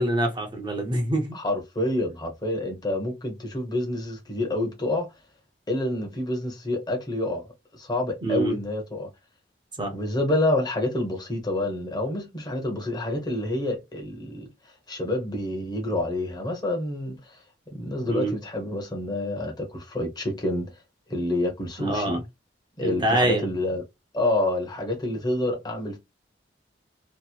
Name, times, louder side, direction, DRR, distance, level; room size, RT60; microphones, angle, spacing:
voice 1, 0.0-1.3 8.2-8.6 9.8-9.9 18.1-18.3 21.8-22.2 22.8-23.5, right 1 dB, 25° right, 0.7 m, -25 dB
voice 2, 1.3-5.1 5.7-7.5 7.7-9.1 9.9-14.5 14.9-17.2 17.7-20.7 21.1-22.2 22.8-23.8 24.1-26.0, left 1 dB, 25° left, 0.8 m, -28 dB
2.8 x 2.0 x 2.2 m
head